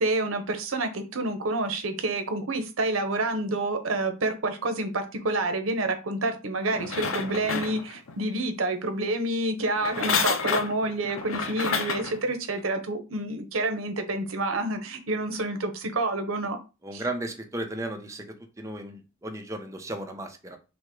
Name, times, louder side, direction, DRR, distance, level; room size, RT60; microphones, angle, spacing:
voice 1, 0.0-16.6 16.9-17.0, right 2 dB, 80° right, 7 dB, 0.9 m, -28 dB
sound 1, 6.7-8.2 9.7-12.2 12.7-12.8, left 5 dB, 80° left, 0.7 m, -29 dB
voice 2, 16.8-18.2 18.6-20.6, right 1 dB, 15° right, 4 dB, 0.7 m, -35 dB
6.0 x 2.2 x 3.7 m, 0.31 s
head